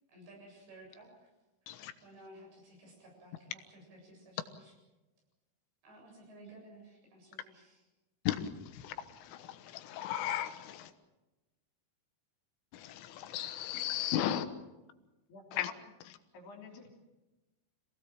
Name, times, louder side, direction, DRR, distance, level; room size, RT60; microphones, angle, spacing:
voice 1, 0.1-1.3 1.6-1.7 2.0-4.7 5.8-7.9, right 1 dB, 65° right, 0 dB, 10.0 m, -55 dB
voice 2, 8.3-10.9 12.7-14.5 15.5-15.7, left 11 dB, 90° left, 10 dB, 3.7 m, -36 dB
voice 3, 15.3-15.8 16.3-16.9, left 3 dB, 60° left, 2 dB, 5.1 m, -50 dB
27.0 x 17.5 x 7.6 m, 1.1 s
omnidirectional pair, 5.5 m